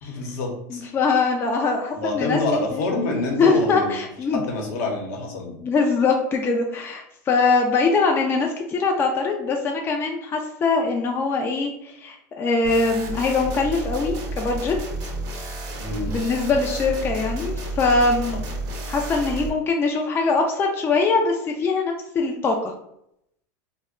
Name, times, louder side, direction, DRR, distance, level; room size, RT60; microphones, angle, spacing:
voice 1, 0.0-0.8 1.9-3.9 4.3-5.6 15.8-16.2, left 2 dB, 70° left, 1 dB, 0.8 m, -26 dB
voice 2, 0.7-2.4 2.7-2.8 3.4-4.4 5.5-14.8 16.1-18.4 18.9-22.7, left 4 dB, 25° left, 2 dB, 0.4 m, -22 dB
sound 1, 12.6-19.5, right 2 dB, 45° right, 0.7 m, -31 dB
2.1 x 2.1 x 3.6 m, 0.77 s
supercardioid pair, 110°, 9 cm